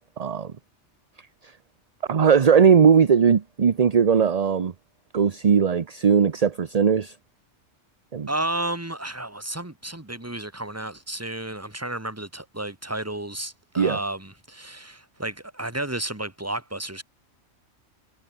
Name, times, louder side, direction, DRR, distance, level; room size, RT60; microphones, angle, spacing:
voice 1, 0.2-0.5 2.1-4.7 5.1-7.1 8.1-8.3 13.8-14.0, right 6 dB, 35° right, 0.7 m, -19 dB
voice 2, 8.3-17.0, right 1 dB, 10° right, 1.9 m, -32 dB
omnidirectional pair, 1.3 m